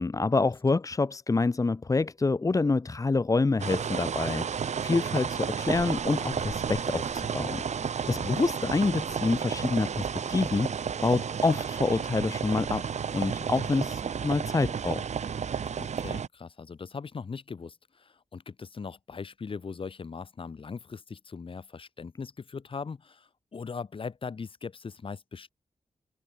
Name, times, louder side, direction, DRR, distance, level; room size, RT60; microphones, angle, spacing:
voice 1, 0.0-12.9 13.1-15.0, left 3 dB, 30° left, 2.1 m, -27 dB
sound 1, 3.6-16.3, right 7 dB, 80° right, 5.4 m, -32 dB
voice 2, 8.1-8.4 15.8-25.5, left 5 dB, 50° left, 4.4 m, -40 dB
wide cardioid pair, 150°, 12 cm